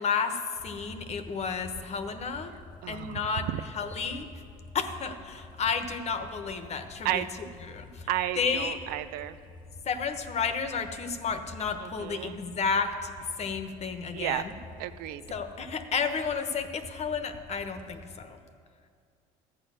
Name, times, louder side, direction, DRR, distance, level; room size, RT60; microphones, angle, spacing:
voice 1, 0.0-2.5 2.9-3.5 3.7-4.3 4.7-7.3 7.6-8.1 8.4-8.8 9.8-13.1 13.4-14.6 15.3-18.4, left 5 dB, 45° left, 8 dB, 1.1 m, -32 dB
sound 1, 0.6-18.2, left 3 dB, 30° left, 0.7 m, -49 dB
voice 2, 2.8-3.6 7.0-7.3 8.1-9.4 11.8-12.3 14.1-14.4 14.8-15.2, right 14 dB, 80° right, 13 dB, 0.6 m, -32 dB
13.5 x 8.6 x 6.2 m, 2.2 s
supercardioid pair, 90°, 15 cm